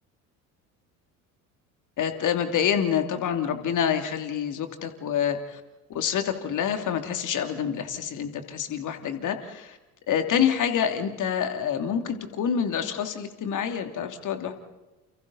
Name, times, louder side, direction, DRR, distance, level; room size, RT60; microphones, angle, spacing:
voice 1, 2.0-5.6 5.9-9.8 10.1-14.5, left 8 dB, 45° left, 6 dB, 3.0 m, -27 dB
30.0 x 29.5 x 4.2 m, 1.1 s
figure-of-eight pair, 60°, 44 cm